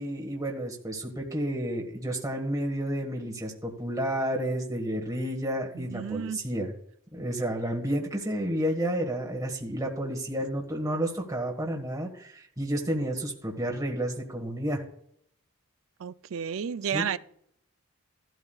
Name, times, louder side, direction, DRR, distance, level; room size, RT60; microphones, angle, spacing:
voice 1, 0.0-6.7 7.1-14.8 16.9-17.0, right 1 dB, 15° right, 1.5 m, -31 dB
voice 2, 5.7-6.4 16.0-17.2, right 7 dB, 65° right, 0.4 m, -32 dB
14.5 x 12.5 x 2.4 m
head